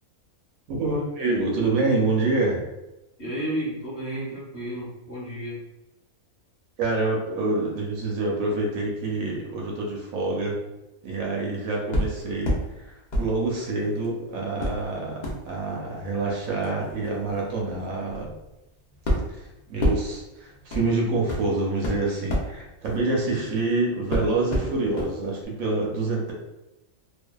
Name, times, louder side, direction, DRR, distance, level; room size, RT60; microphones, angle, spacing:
voice 1, 0.7-2.6 6.8-10.6 11.0-12.9 13.2-18.3 19.7-26.3, right 2 dB, 75° right, -2 dB, 1.0 m, -26 dB
voice 2, 3.2-5.6 23.2-23.5, right 1 dB, 30° left, -9 dB, 1.0 m, -32 dB
sound 1, 11.9-12.7 13.1-14.1 14.6-23.7 24.1-25.1 25.4-25.5, equal, 85° left, 0.4 m, -30 dB
2.5 x 2.3 x 2.2 m, 0.96 s
omnidirectional pair, 1.5 m